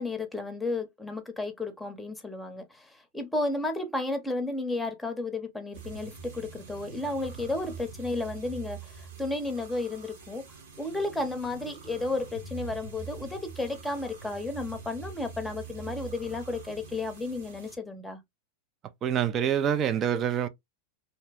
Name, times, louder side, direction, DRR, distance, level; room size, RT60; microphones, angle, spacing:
voice 1, 0.0-10.4 10.8-18.2, left 2 dB, 5° left, 0.8 m, -33 dB
sound 1, 5.7-17.8, right 5 dB, 75° right, 1.2 m, -44 dB
voice 2, 19.0-20.5, right 9 dB, 35° right, 0.5 m, -26 dB
2.8 x 2.1 x 3.4 m
hypercardioid pair, 115°, 0 cm